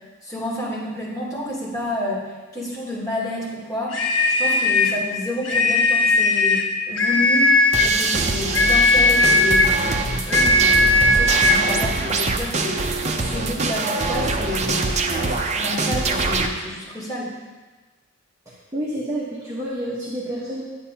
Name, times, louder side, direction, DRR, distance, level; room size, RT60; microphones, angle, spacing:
voice 1, 0.2-7.5 7.8-13.0 13.3-17.3, left 1 dB, 15° left, -8 dB, 3.0 m, -30 dB
sound 1, 3.9-5.0 5.4-6.7 7.0-7.9 8.5-9.8 10.3-11.6, left 2 dB, 65° left, 1.1 m, -17 dB
sound 2, 7.7-16.5, right 3 dB, 30° right, 0.6 m, -24 dB
voice 2, 18.5-20.6, right 1 dB, 15° right, -8 dB, 1.1 m, -29 dB
10.5 x 9.0 x 2.9 m, 1.3 s
head